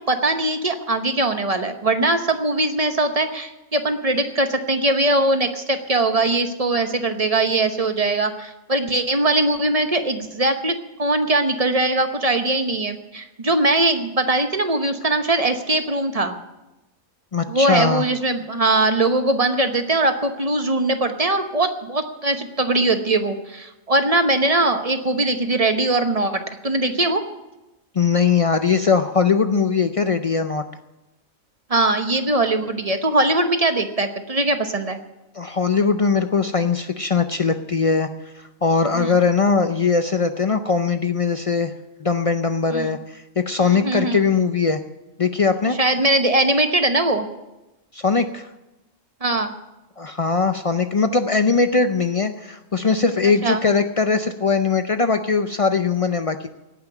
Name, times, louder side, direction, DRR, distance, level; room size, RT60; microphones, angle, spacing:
voice 1, 0.1-16.4 17.5-27.2 31.7-35.0 38.9-39.1 42.7-43.0 43.6-44.2 45.8-47.3 49.2-49.5 53.4-53.6, right 2 dB, 30° right, 7 dB, 0.9 m, -21 dB
voice 2, 17.3-18.0 27.9-30.6 35.3-38.1 38.4-41.7 42.0-44.8 45.2-45.8 47.9-48.5 50.0-56.5, left 5 dB, 65° left, 8 dB, 0.3 m, -20 dB
17.5 x 5.9 x 10.0 m, 0.99 s
omnidirectional pair, 1.4 m